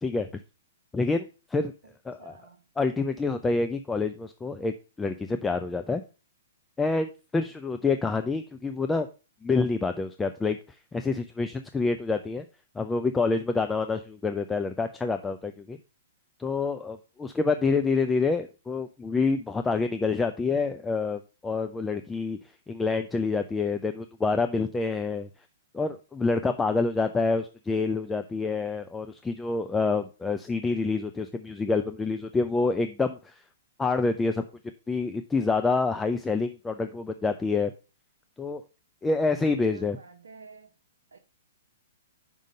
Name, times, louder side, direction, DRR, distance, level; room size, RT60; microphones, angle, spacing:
voice 1, 0.9-1.7 2.1-2.4 2.8-6.0 6.8-9.1 9.4-10.6 10.9-12.4 12.8-15.8 16.4-22.4 22.7-25.3 25.7-33.4 33.8-34.4 34.9-37.7 38.4-38.6 39.0-40.0, left 4 dB, 10° left, 0.4 m, -27 dB
voice 2, 1.8-2.6 39.6-40.7 41.1-41.2, right 4 dB, 75° right, 0.8 m, -51 dB
5.3 x 5.1 x 6.2 m
figure-of-eight pair, 115°, 0 cm